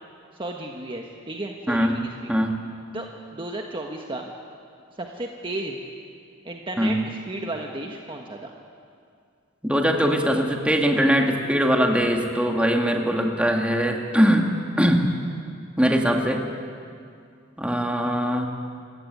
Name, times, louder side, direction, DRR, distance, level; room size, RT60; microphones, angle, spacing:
voice 1, 0.4-2.3 2.9-4.3 5.0-5.8 6.4-8.5, right 2 dB, 25° right, 1 dB, 1.4 m, -34 dB
voice 2, 1.7-2.0 2.3-2.6 6.8-7.0 9.6-14.5 14.8-15.1 15.8-16.4 17.6-18.5, equal, 5° right, 2 dB, 2.1 m, -21 dB
27.5 x 15.5 x 9.6 m, 2.3 s
head